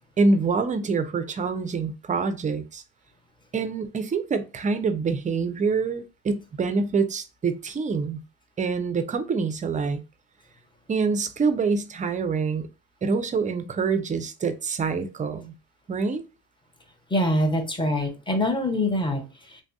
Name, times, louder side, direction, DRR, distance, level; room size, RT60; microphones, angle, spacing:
voice 1, 0.2-2.8 3.5-8.2 8.6-10.0 10.9-12.7 13.0-15.5 15.9-16.2, right 4 dB, 20° right, 0.4 m, -26 dB
voice 2, 17.1-19.6, left 1 dB, 10° left, 0.7 m, -25 dB
3.3 x 2.6 x 2.2 m
cardioid pair, 95°, 40 cm